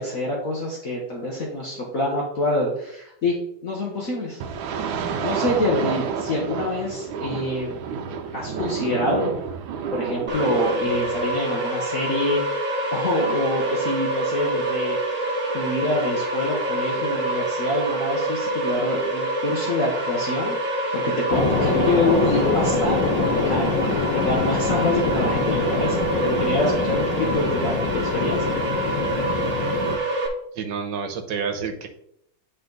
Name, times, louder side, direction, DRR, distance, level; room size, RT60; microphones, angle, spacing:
voice 1, 0.0-3.4 3.6-4.4 5.2-7.8 8.3-9.3 9.9-28.6, left 1 dB, 50° left, -3 dB, 1.5 m, -26 dB
sound 1, 4.4-11.3, right 6 dB, 90° right, 1.5 m, -30 dB
sound 2, 10.3-30.3, right 2 dB, 40° right, 1.3 m, -26 dB
sound 3, 21.3-30.0, left 4 dB, 75° left, 1.5 m, -25 dB
voice 2, 30.5-31.9, right 6 dB, 70° right, 5 dB, 1.6 m, -29 dB
9.6 x 4.1 x 3.9 m, 0.74 s
omnidirectional pair, 2.1 m